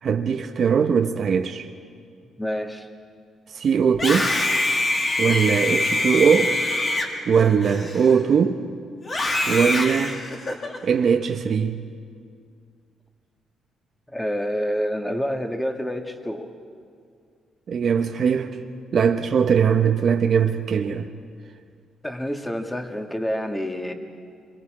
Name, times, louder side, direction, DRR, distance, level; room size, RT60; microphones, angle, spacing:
voice 1, 0.0-1.7 3.5-4.3 5.2-6.6 7.3-8.6 9.5-10.2 10.8-11.8 17.7-18.5 18.9-21.1, right 7 dB, 55° right, 5 dB, 0.9 m, -20 dB
voice 2, 2.4-2.9 14.1-16.5 22.0-23.9, equal, 10° left, 4 dB, 1.8 m, -28 dB
Screaming, 3.9-8.4 9.0-10.8, left 2 dB, 35° left, 2.8 m, -24 dB
27.5 x 22.5 x 4.9 m, 2.2 s
cardioid pair, 90°, 0 cm